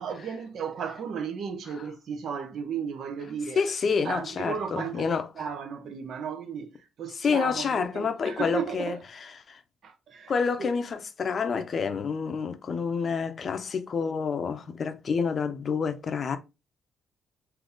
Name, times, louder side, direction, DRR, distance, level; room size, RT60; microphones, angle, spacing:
voice 1, 0.0-3.6 4.0-5.1 5.4-6.7 7.0-9.0 9.8-10.3 10.6-10.7, right 7 dB, 65° right, 0.9 m, -34 dB
voice 2, 3.6-5.5 7.1-9.6 10.3-16.4, left 5 dB, 45° left, 0.6 m, -28 dB
3.9 x 2.8 x 3.6 m
cardioid pair, 105°, 0 cm